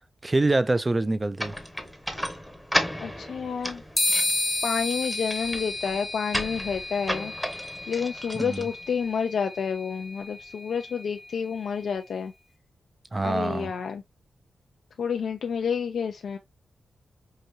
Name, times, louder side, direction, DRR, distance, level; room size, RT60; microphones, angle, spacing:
voice 1, 0.2-1.5 8.3-8.7 13.1-13.7, right 2 dB, 25° right, 0.4 m, -25 dB
sound 1, 1.4-9.2, equal, ahead, 0.8 m, -34 dB
voice 2, 3.0-3.8 4.6-7.3 7.9-12.3 13.2-14.0 15.0-16.4, left 6 dB, 80° left, 0.4 m, -29 dB
sound 2, 4.0-11.6, left 2 dB, 30° left, 0.7 m, -32 dB
4.8 x 2.7 x 2.6 m
cardioid pair, 90°, 0 cm